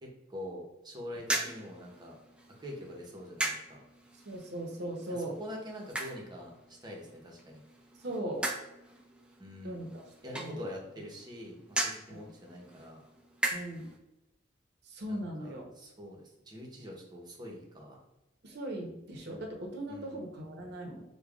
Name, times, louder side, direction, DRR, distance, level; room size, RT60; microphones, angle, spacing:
voice 1, 0.0-2.2 2.6-3.8 5.1-7.6 9.4-9.9 10.2-13.0 15.1-18.0 19.9-20.2, equal, 25° right, -2 dB, 0.8 m, -45 dB
sound 1, 1.2-14.0, right 1 dB, 5° right, 0.4 m, -40 dB
voice 2, 4.2-5.3 8.0-8.4 9.6-10.0 10.3-10.6 12.1-12.3 13.5-13.9 14.8-15.6 18.4-21.0, right 1 dB, 60° right, 1 dB, 0.8 m, -39 dB
5.1 x 2.2 x 2.3 m, 0.93 s
head